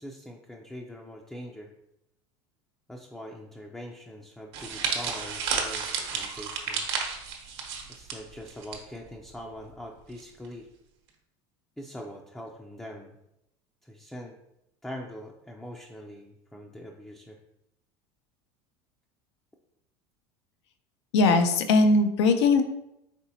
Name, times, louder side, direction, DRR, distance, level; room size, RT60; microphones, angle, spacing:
voice 1, 0.0-1.7 2.9-6.9 7.9-10.7 11.8-13.2 13.8-14.4 14.8-17.4, equal, 5° left, 0 dB, 0.4 m, -43 dB
sound 1, 4.5-8.8 9.1-9.3 10.2-10.5, right 6 dB, 75° right, 1.0 m, -32 dB
voice 2, 21.1-22.6, left 3 dB, 85° left, 8 dB, 0.5 m, -20 dB
4.3 x 3.9 x 2.7 m, 0.83 s
supercardioid pair, 105°, 14 cm